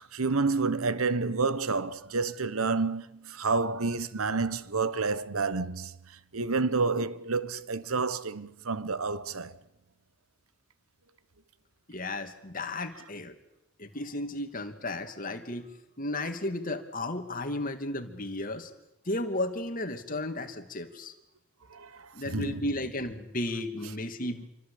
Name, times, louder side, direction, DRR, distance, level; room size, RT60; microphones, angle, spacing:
voice 1, 0.0-6.0 6.3-9.6 21.7-22.6, right 4 dB, 85° right, 1.2 m, -29 dB
voice 2, 11.9-13.4 13.8-15.7 16.0-18.7 19.0-21.1 22.1-24.5, left 1 dB, 40° left, 2.7 m, -34 dB
28.0 x 24.0 x 8.7 m
head